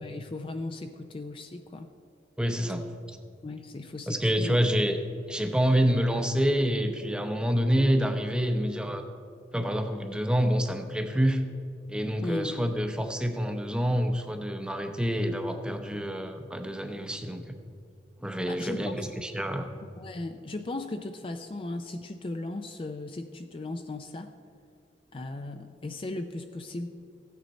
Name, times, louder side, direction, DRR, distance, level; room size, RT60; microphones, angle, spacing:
voice 1, 0.0-1.9 3.4-4.5 12.2-12.7 18.5-19.1 20.0-24.3 25.1-26.9, left 2 dB, 30° left, 7 dB, 0.4 m, -37 dB
voice 2, 2.4-3.2 4.1-5.0 5.3-9.0 9.5-11.4 11.9-17.4 18.2-19.7, equal, 5° right, 6 dB, 0.7 m, -27 dB
14.5 x 9.3 x 4.2 m, 2.4 s
head